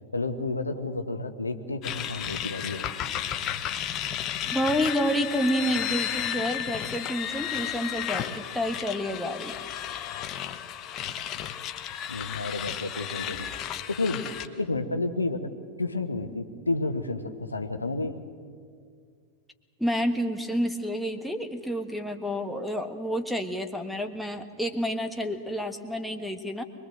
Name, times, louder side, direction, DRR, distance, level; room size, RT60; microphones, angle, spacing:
voice 1, 0.1-2.8 12.1-13.5 13.9-15.5 15.8-18.2, left 2 dB, 80° left, 7 dB, 1.3 m, -31 dB
sound 1, 1.8-14.5, left 10 dB, 35° left, 1.2 m, -33 dB
voice 2, 4.5-9.6 19.8-26.6, equal, ahead, 4 dB, 1.5 m, -29 dB
24.0 x 21.5 x 7.8 m, 2.1 s
figure-of-eight pair, 90°, 0 cm